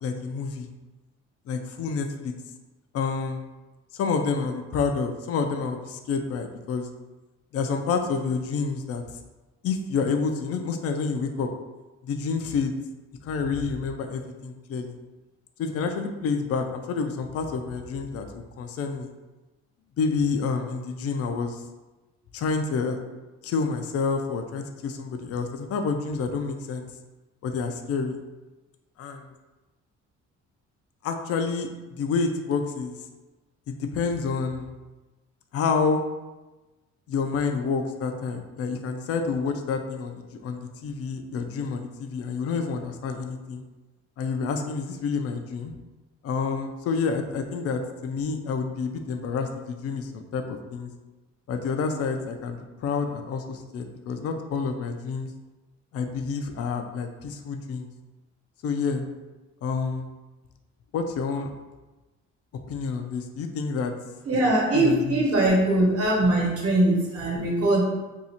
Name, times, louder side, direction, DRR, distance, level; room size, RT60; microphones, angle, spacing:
voice 1, 0.0-0.7 1.5-2.3 2.9-3.4 3.9-6.9 7.5-9.0 9.6-11.5 12.0-12.7 13.2-15.0 15.6-19.1 20.0-21.6 22.3-23.0 23.4-26.9 27.4-28.2 29.0-29.3 31.0-31.7 32.0-33.0 33.7-34.7 35.5-36.0 37.1-43.6 44.2-45.7 46.2-50.9 51.5-55.3 55.9-57.9 58.6-59.0 59.6-60.1 60.9-61.5 62.7-63.9 64.7-65.2, left 5 dB, 50° left, 5 dB, 0.4 m, -28 dB
voice 2, 64.2-67.8, right 1 dB, 50° right, -3 dB, 1.1 m, -21 dB
2.7 x 2.4 x 4.1 m, 1.1 s
cardioid pair, 90°, 30 cm